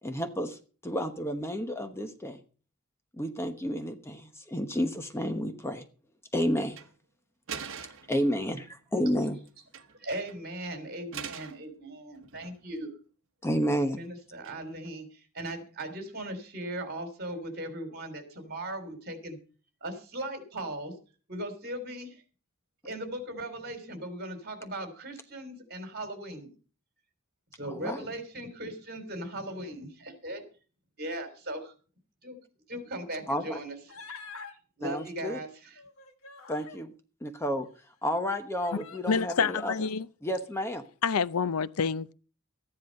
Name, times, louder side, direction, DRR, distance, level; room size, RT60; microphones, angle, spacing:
voice 1, 0.0-2.4 3.1-5.8 6.3-6.8 8.1-9.4 13.4-14.0 27.7-28.0 33.3-33.6 34.8-35.4 36.5-36.9 37.2-37.7 38.0-39.7 40.2-40.8, equal, 10° left, 1.0 m, -31 dB
sound 1, 6.6-6.9 7.5-8.2 9.5-10.0 10.3-10.4 11.1-11.6 12.1-12.8 14.4-14.9, right 7 dB, 65° right, 1.2 m, -42 dB
voice 2, 9.9-12.9 13.9-19.4 19.8-20.9 21.3-22.2 22.8-26.5 27.6-30.4 31.0-31.7 32.2-32.4 32.7-33.7 34.8-35.7, right 1 dB, 50° right, 3.5 m, -38 dB
Human voice, 33.9-34.5 35.7-36.8 37.6-37.7 38.6-39.3, left 5 dB, 75° left, 1.8 m, -46 dB
voice 3, 39.1-40.1 41.0-42.1, left 6 dB, 90° left, 0.6 m, -27 dB
14.0 x 10.5 x 5.3 m
head